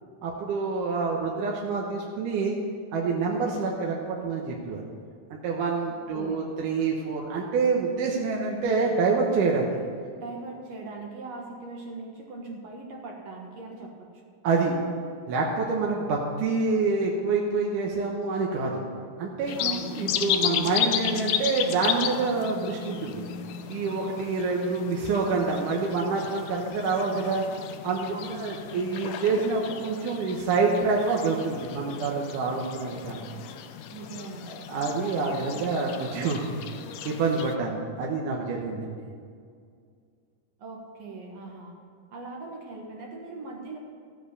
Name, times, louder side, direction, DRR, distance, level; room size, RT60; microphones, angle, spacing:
voice 1, 0.2-2.6 2.9-4.8 5.3-9.7 14.4-14.8 15.3-18.8 19.2-23.3 23.7-27.4 27.8-33.2 34.5-36.5 37.0-39.1, right 4 dB, 75° right, -2 dB, 2.6 m, -27 dB
voice 2, 5.9-6.5 10.2-14.1 19.6-20.2 28.1-28.5 33.9-34.7 40.6-41.8 42.1-43.8, right 3 dB, 60° right, 0 dB, 2.2 m, -40 dB
sound 1, 19.5-37.6, left 9 dB, 80° left, 2.2 m, -34 dB
15.0 x 7.8 x 6.9 m, 2.2 s
omnidirectional pair, 3.8 m